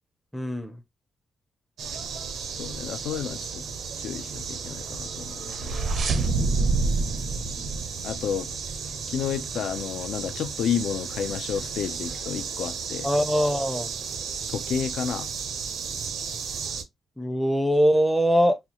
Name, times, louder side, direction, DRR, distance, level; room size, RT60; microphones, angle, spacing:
voice 1, 0.3-0.8 13.0-13.9 17.2-18.6, equal, ahead, 0.4 m, -22 dB
sound 1, 1.8-16.8, right 6 dB, 90° right, 0.8 m, -34 dB
voice 2, 2.5-3.7 4.0-5.9 8.0-8.5 9.1-13.1 14.5-15.3, left 8 dB, 90° left, 0.4 m, -31 dB
sound 2, 5.1-8.7, right 3 dB, 55° right, 0.5 m, -27 dB
4.1 x 2.3 x 2.9 m
wide cardioid pair, 175°, 0 cm